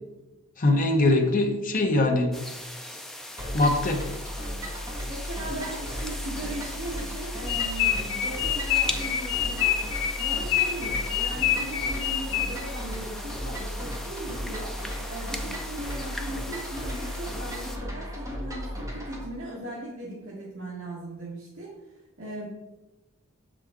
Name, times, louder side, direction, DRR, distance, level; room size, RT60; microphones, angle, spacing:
voice 1, 0.6-2.3 3.5-4.0, left 2 dB, 40° left, 3 dB, 0.9 m, -22 dB
sound 1, 2.3-17.8, left 1 dB, ahead, 0.4 m, -40 dB
sound 2, 3.4-19.3, equal, 15° right, 1.4 m, -35 dB
voice 2, 5.0-9.8 10.2-21.7 22.2-22.5, right 1 dB, 60° right, -7 dB, 1.4 m, -38 dB
sound 3, 7.5-12.8, left 10 dB, 65° left, 0.6 m, -27 dB
6.7 x 5.0 x 3.6 m, 1.1 s
head